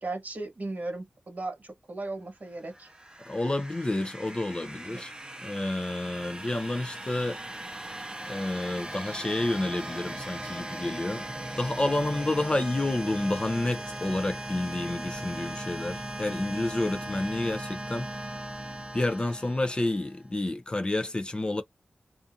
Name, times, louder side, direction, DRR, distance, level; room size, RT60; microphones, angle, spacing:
voice 1, 0.0-2.9 4.9-5.0, right 2 dB, 50° right, 1.2 m, -36 dB
sound 1, 2.5-20.2, right 1 dB, 20° right, 0.6 m, -38 dB
voice 2, 3.3-5.1 5.4-7.4 8.3-11.2 11.6-18.1 18.9-21.6, left 2 dB, 25° left, 0.3 m, -29 dB
2.4 x 2.4 x 2.6 m
wide cardioid pair, 90°, 4 cm